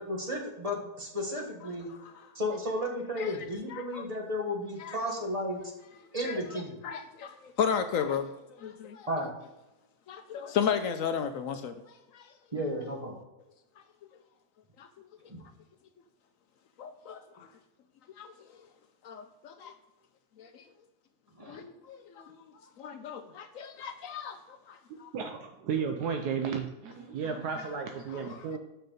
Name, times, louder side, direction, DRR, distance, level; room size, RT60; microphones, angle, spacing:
voice 1, 0.0-1.9 2.3-5.6 6.1-6.8 9.1-9.3 12.5-13.2 15.3-15.4 21.4-21.6, left 1 dB, 25° right, 1.2 m, -33 dB
voice 2, 3.7-4.0 4.8-5.0 6.2-6.4 6.8-8.3 8.6-9.1 10.1-11.7 12.1-12.3 14.8-15.1 16.8-17.5 18.2-18.3 19.0-19.7 20.4-20.6 21.5-22.4 22.8-25.1 28.1-28.5, left 7 dB, 65° left, 0.9 m, -34 dB
voice 3, 25.1-28.6, right 6 dB, 80° right, 1.2 m, -33 dB
6.2 x 5.5 x 5.1 m
omnidirectional pair, 1.7 m